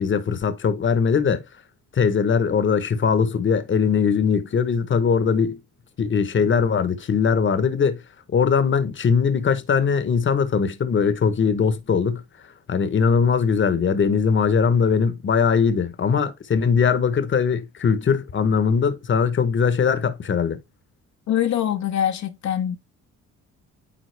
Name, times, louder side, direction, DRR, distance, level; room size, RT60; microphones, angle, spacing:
voice 1, 0.0-1.4 1.9-5.6 6.0-8.0 8.3-12.2 12.7-20.6, left 6 dB, 40° left, 1.1 m, -20 dB
voice 2, 21.3-22.8, left 10 dB, 65° left, 0.9 m, -23 dB
9.4 x 3.7 x 3.3 m
cardioid pair, 90°, 30 cm